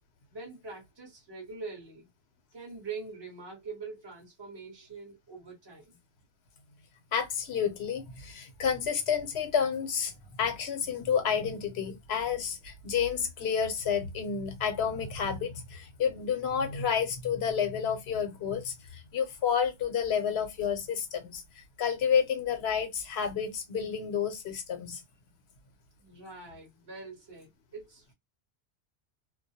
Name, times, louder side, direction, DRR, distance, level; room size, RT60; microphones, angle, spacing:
voice 1, 0.3-2.1 2.5-6.0 26.0-28.1, right 4 dB, 25° right, 0.9 m, -44 dB
voice 2, 7.1-10.1 10.4-21.4 21.8-25.0, left 7 dB, 70° left, 0.9 m, -30 dB
2.3 x 2.0 x 2.7 m
omnidirectional pair, 1.2 m